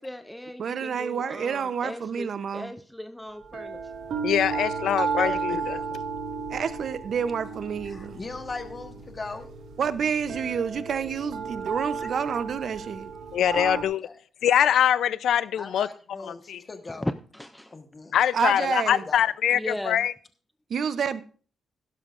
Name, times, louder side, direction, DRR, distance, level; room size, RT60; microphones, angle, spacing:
voice 1, 0.0-3.9 16.9-17.8 19.5-20.1, left 1 dB, 5° left, 0.4 m, -37 dB
voice 2, 0.6-2.7 6.5-8.2 9.8-13.1 18.3-19.0 20.7-21.2, right 7 dB, 50° right, 0.7 m, -29 dB
sound 1, 3.4-13.8, right 5 dB, 75° right, 1.8 m, -33 dB
voice 3, 4.2-5.8 13.3-14.0 14.4-15.9 16.5-16.6 18.1-19.6 19.9-20.1, left 10 dB, 70° left, 0.5 m, -23 dB
voice 4, 5.2-5.9 7.8-9.5 12.0-12.1 13.5-14.2 15.6-17.1 17.7-18.2 18.5-18.6 18.9-19.3, left 3 dB, 25° left, 1.3 m, -39 dB
16.0 x 12.0 x 2.5 m
wide cardioid pair, 170°, 0 cm